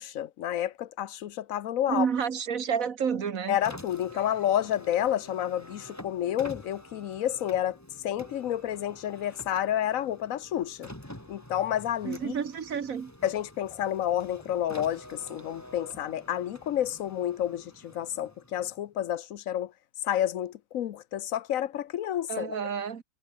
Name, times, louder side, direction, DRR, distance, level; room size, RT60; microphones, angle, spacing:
voice 1, 0.0-2.1 3.5-7.8 8.0-10.9 11.3-12.3 13.2-19.7 20.0-22.6, left 11 dB, 75° left, 1.1 m, -30 dB
voice 2, 1.9-3.6 12.0-13.1 22.3-23.0, right 7 dB, 70° right, 1.8 m, -30 dB
Car, 3.5-18.9, left 1 dB, 10° left, 3.7 m, -48 dB
omnidirectional pair, 1.5 m